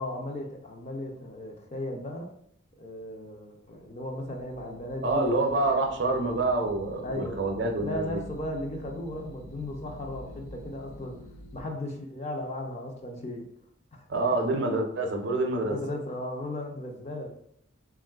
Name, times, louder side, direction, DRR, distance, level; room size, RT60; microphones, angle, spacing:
voice 1, 0.0-2.3 2.8-5.6 7.0-7.5 7.8-11.2 11.5-13.5 13.9-14.0 15.7-17.3, left 1 dB, 30° left, 1 dB, 0.4 m, -36 dB
sound 1, 3.9-11.6, equal, 85° left, 0.5 m, -47 dB
voice 2, 5.0-8.2 14.1-15.8, right 2 dB, 55° right, 4 dB, 0.5 m, -27 dB
3.5 x 2.4 x 2.3 m, 0.70 s
head